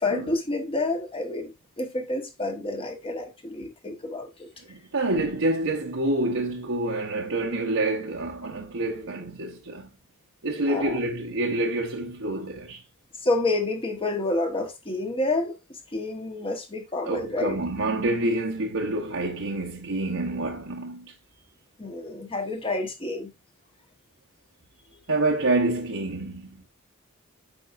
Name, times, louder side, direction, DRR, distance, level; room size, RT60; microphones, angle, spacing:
voice 1, 0.0-1.5 1.8-4.5 10.7-11.0 13.2-15.6 15.9-17.6 21.8-23.3, left 2 dB, 25° left, 1.2 m, -29 dB
voice 2, 4.7-9.9 10.4-12.8 17.1-21.1 25.1-26.6, right 2 dB, 65° right, 0.9 m, -27 dB
8.6 x 5.4 x 2.5 m
head